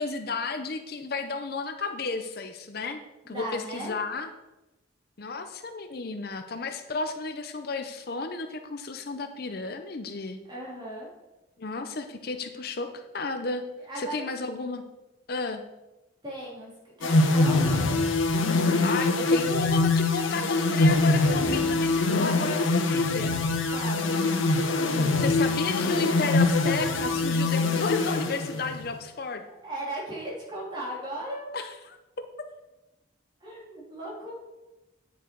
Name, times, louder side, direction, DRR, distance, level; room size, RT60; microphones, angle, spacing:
voice 1, 0.0-3.0 3.3-4.3 5.2-10.4 11.6-13.7 14.0-14.8 15.3-15.6 18.8-23.3 25.1-29.4 31.5-32.0, left 3 dB, 50° left, 7 dB, 0.6 m, -33 dB
voice 2, 3.2-3.9 10.5-11.1 13.9-14.3 16.2-17.9 23.7-24.2 29.6-31.5 33.4-34.3, right 1 dB, 25° right, -5 dB, 3.2 m, -37 dB
sound 1, 17.0-28.9, left 2 dB, 80° left, 1.0 m, -24 dB
9.1 x 7.4 x 4.6 m, 1.0 s
head